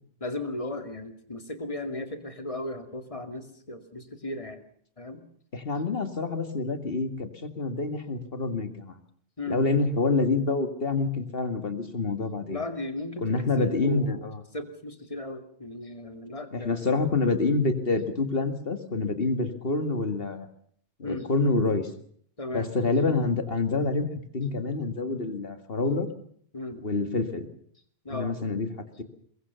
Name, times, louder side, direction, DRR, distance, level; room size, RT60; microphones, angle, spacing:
voice 1, 0.2-4.6 5.0-5.2 9.4-9.6 12.5-14.2 14.5-16.9 21.0-21.3 22.4-22.7 26.5-26.8 28.0-28.4, left 2 dB, 30° left, 7 dB, 2.5 m, -36 dB
voice 2, 5.5-9.0 9.5-12.6 13.2-14.4 16.5-20.5 21.0-21.9 22.5-24.1 24.3-26.1 26.8-27.5 28.1-28.7, left 3 dB, 65° left, 9 dB, 2.3 m, -27 dB
23.0 x 23.0 x 7.0 m, 0.62 s
omnidirectional pair, 1.1 m